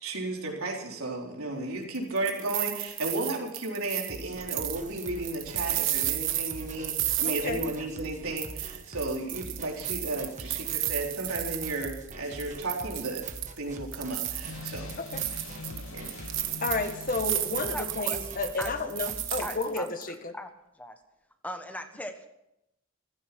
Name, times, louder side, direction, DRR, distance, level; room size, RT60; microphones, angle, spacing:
voice 1, 0.0-13.2 13.6-14.9 15.6-16.1, right 2 dB, 85° right, 0 dB, 4.2 m, -34 dB
sound 1, 1.9-8.1 8.4-12.1 12.4-13.6 13.9-20.0, right 14 dB, 65° right, 1.4 m, -33 dB
sound 2, 4.1-19.6, right 1 dB, 35° right, 1.5 m, -44 dB
voice 2, 7.2-7.6 15.0-15.2 16.6-20.3, left 3 dB, 40° left, 7 dB, 1.6 m, -32 dB
sound 3, 14.4-18.8, left 4 dB, 80° left, 1.1 m, -45 dB
voice 3, 17.7-18.2 18.6-18.9 19.4-19.9 20.3-20.5 20.8-21.0 21.4-22.3, left 1 dB, 5° left, 7 dB, 1.2 m, -38 dB
15.5 x 15.0 x 6.1 m, 0.84 s
head